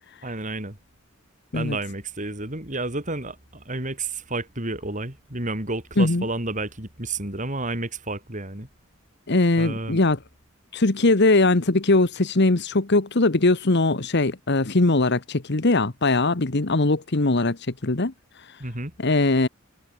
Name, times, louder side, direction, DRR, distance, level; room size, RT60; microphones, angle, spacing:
voice 1, 0.2-0.8 1.5-8.7 9.6-10.0 18.6-18.9, right 2 dB, 40° right, 6.3 m, -31 dB
voice 2, 9.3-10.2 10.7-18.1 19.0-19.5, left 2 dB, 55° left, 1.4 m, -20 dB
head